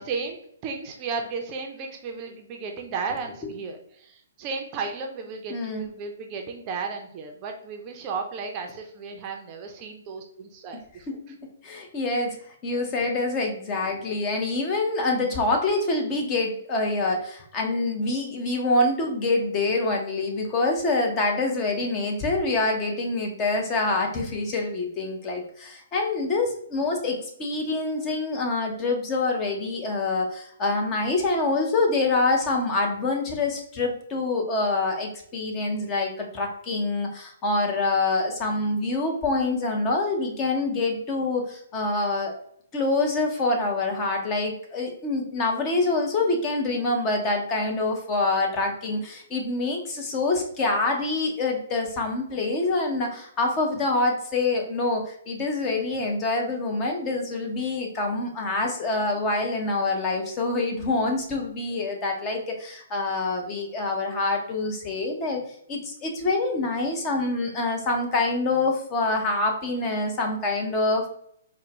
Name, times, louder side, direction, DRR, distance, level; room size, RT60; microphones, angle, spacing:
voice 1, 0.0-11.3 13.8-14.0, right 4 dB, 30° right, 3 dB, 0.5 m, -34 dB
voice 2, 5.5-5.9 11.1-11.2 11.6-12.4 12.6-42.3 42.7-65.4 65.7-71.1, left 2 dB, 25° left, 2 dB, 0.8 m, -26 dB
4.4 x 2.2 x 3.0 m, 0.67 s
hypercardioid pair, 135°, 0 cm